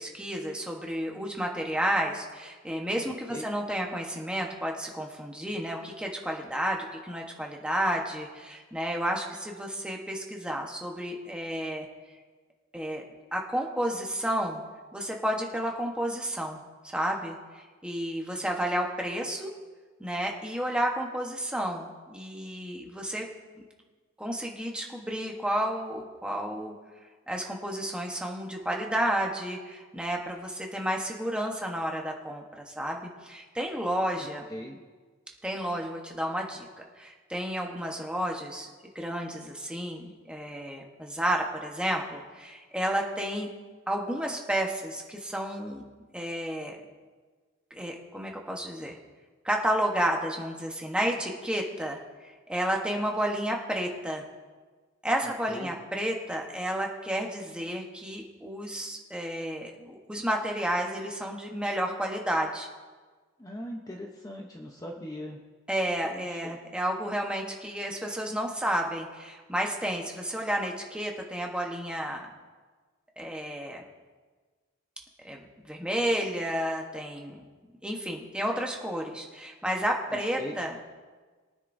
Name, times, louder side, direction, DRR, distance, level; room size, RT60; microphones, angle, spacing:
voice 1, 0.0-11.9 12.7-13.0 13.3-14.6 14.9-19.5 20.0-23.3 24.2-26.7 27.3-34.4 35.4-36.7 37.0-38.7 38.9-43.5 43.9-45.8 46.1-46.8 47.7-49.0 49.4-52.0 52.5-54.2 55.0-62.7 65.7-72.3 73.2-73.8 75.2-77.4 77.8-80.8, equal, 5° right, 0 dB, 1.1 m, -31 dB
voice 2, 3.0-3.5 34.2-34.8 55.2-55.7 63.4-65.4 66.0-66.6 80.1-80.6, equal, 15° left, 1 dB, 0.8 m, -40 dB
22.5 x 9.4 x 2.7 m, 1.4 s
head